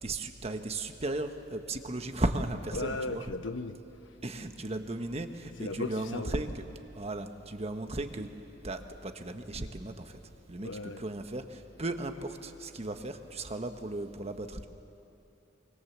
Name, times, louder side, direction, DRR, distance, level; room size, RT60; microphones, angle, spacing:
voice 1, 0.0-3.3 4.2-6.6 6.9-8.3 8.6-10.2 10.5-14.7, right 2 dB, 35° right, 7 dB, 1.2 m, -36 dB
voice 2, 2.7-3.8 5.6-6.3 10.6-11.0, left 2 dB, 80° left, 9 dB, 1.0 m, -36 dB
24.5 x 24.0 x 7.3 m, 2.8 s
head